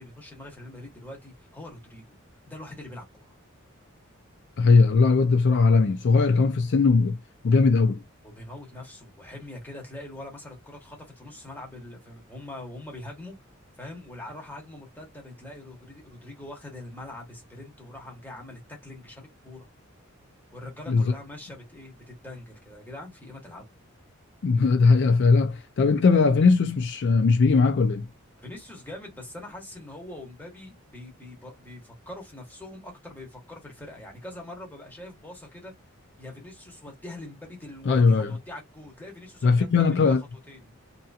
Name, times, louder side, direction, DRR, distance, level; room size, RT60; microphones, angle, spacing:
voice 1, 0.0-2.2 2.5-3.3 8.2-13.4 13.8-19.7 20.5-23.6 28.4-35.7 36.2-40.7, left 1 dB, 10° left, 1.1 m, -43 dB
voice 2, 4.6-7.2 7.4-8.0 20.9-21.0 24.4-28.1 37.9-38.3 39.4-40.2, left 4 dB, 60° left, 0.4 m, -19 dB
2.7 x 2.6 x 2.3 m
head